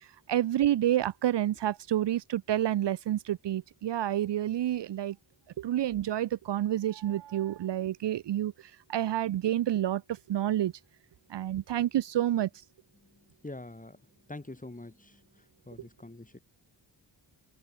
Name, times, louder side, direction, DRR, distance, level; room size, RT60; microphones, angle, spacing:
voice 1, 0.3-5.2 5.6-8.5 8.9-10.7 11.3-12.5, right 12 dB, 65° right, 0.8 m, -29 dB
voice 2, 13.0-14.0 14.3-16.4, left 2 dB, 15° left, 7.1 m, -46 dB
cardioid pair, 65°, 45 cm